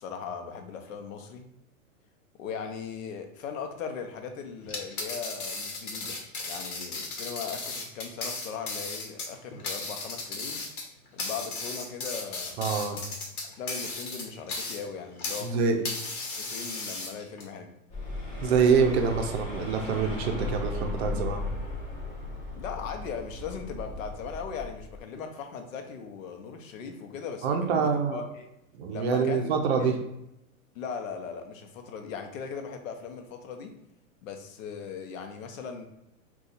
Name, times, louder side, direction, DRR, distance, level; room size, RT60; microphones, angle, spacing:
voice 1, 0.0-1.5 2.4-6.2 6.4-10.7 11.1-12.6 13.6-15.9 16.3-17.7 22.5-28.5 28.9-30.0 30.7-33.8 34.2-35.9, left 6 dB, 65° left, 5 dB, 0.7 m, -39 dB
sound 1, 4.6-15.5 15.8-17.4, left 3 dB, 85° left, 1.0 m, -36 dB
voice 2, 12.6-13.0 15.4-15.8 18.4-21.4 27.4-28.2 28.7-30.0, right 5 dB, 50° right, 4 dB, 0.6 m, -25 dB
sound 2, 17.9-25.0, left 2 dB, 20° left, 0.5 m, -36 dB
2.6 x 2.4 x 3.9 m, 0.83 s
hypercardioid pair, 150°, 43 cm